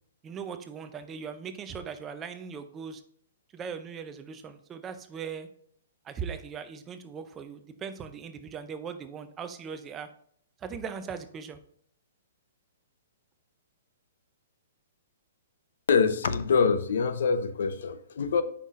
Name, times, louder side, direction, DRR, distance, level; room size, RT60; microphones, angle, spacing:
voice 1, 0.2-3.0 3.5-5.5 6.0-10.1 10.6-11.6, right 6 dB, 15° right, 10 dB, 0.4 m, -39 dB
voice 2, 15.9-18.4, left 5 dB, 70° left, 11 dB, 0.7 m, -25 dB
8.0 x 5.5 x 2.5 m, 0.62 s
hypercardioid pair, 165°, 0 cm